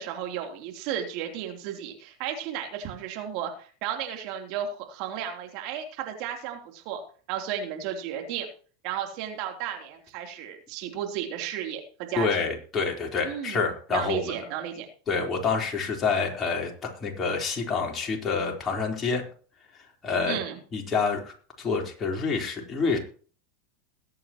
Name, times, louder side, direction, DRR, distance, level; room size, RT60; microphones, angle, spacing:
voice 1, 0.0-7.0 7.3-8.5 8.8-11.8 12.1-12.3 13.2-13.6 13.9-14.9 15.1-15.2 20.3-20.6, right 9 dB, 55° right, 3 dB, 3.3 m, -33 dB
voice 2, 12.2-14.3 15.1-19.2 20.0-20.4 20.7-23.0, left 4 dB, 30° left, 1 dB, 3.9 m, -27 dB
21.0 x 8.5 x 3.0 m, 0.42 s
hypercardioid pair, 90°, 0 cm